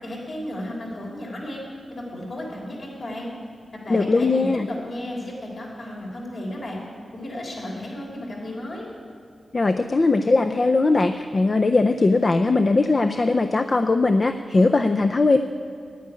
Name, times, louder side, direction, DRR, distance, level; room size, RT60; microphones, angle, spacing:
voice 1, 0.0-1.6 1.9-3.3 3.8-6.8 7.1-8.9, left 1 dB, 55° left, -2 dB, 3.8 m, -33 dB
voice 2, 3.9-4.7 9.5-15.4, left 3 dB, 35° left, 7 dB, 0.4 m, -20 dB
9.9 x 9.3 x 9.6 m, 2.5 s
wide cardioid pair, 120°, 0 cm